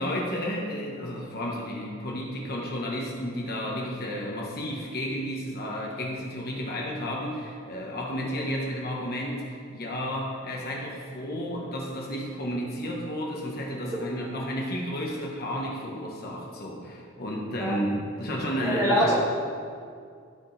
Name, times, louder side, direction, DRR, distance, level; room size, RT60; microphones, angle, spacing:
voice 1, 0.0-19.1, equal, 50° left, -2 dB, 1.2 m, -32 dB
voice 2, 18.6-19.1, equal, 15° right, -8 dB, 2.4 m, -23 dB
15.5 x 5.2 x 3.3 m, 2.2 s
head